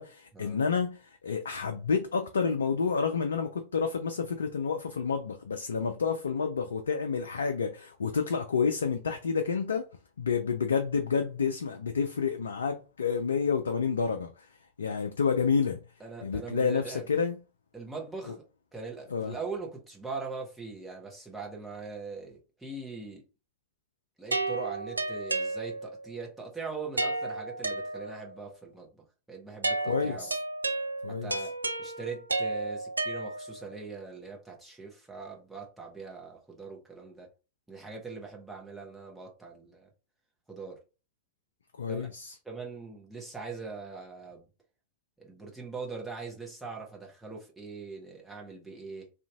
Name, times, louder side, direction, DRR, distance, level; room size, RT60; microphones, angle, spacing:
voice 1, 0.0-9.8 10.2-14.5 14.8-15.8 16.2-17.4 19.1-19.4 29.9-30.4 31.0-31.3 41.8-42.3, left 5 dB, 70° left, 0.3 m, -29 dB
voice 2, 16.0-17.1 17.7-18.4 18.7-23.2 24.2-30.3 31.1-37.3 37.7-39.9 40.5-40.8 41.9-42.1 42.4-44.5 45.2-49.1, right 4 dB, 5° right, 1.1 m, -41 dB
sound 1, 24.3-26.1 27.0-28.4 29.6-33.7, right 2 dB, 80° right, 0.3 m, -32 dB
2.8 x 2.5 x 3.4 m
figure-of-eight pair, 90°, 0 cm